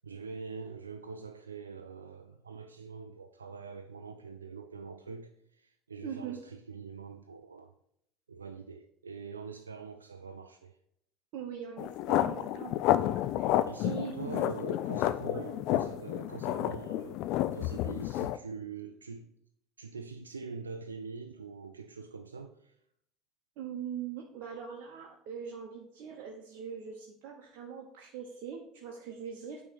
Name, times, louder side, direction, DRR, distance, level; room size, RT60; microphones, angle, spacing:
voice 1, 0.0-7.7 8.3-10.7 12.4-12.5 13.7-17.2 17.5-19.3 19.8-22.7, right 5 dB, 90° right, 7 dB, 0.3 m, -44 dB
voice 2, 6.0-6.4 11.3-12.7 13.0-13.5 13.8-14.4 15.3-15.5 23.6-29.6, right 7 dB, 60° right, 1 dB, 0.9 m, -42 dB
sound 1, 11.8-18.4, left 13 dB, 60° left, 0.3 m, -30 dB
9.0 x 3.1 x 5.8 m, 0.73 s
hypercardioid pair, 70°, 0 cm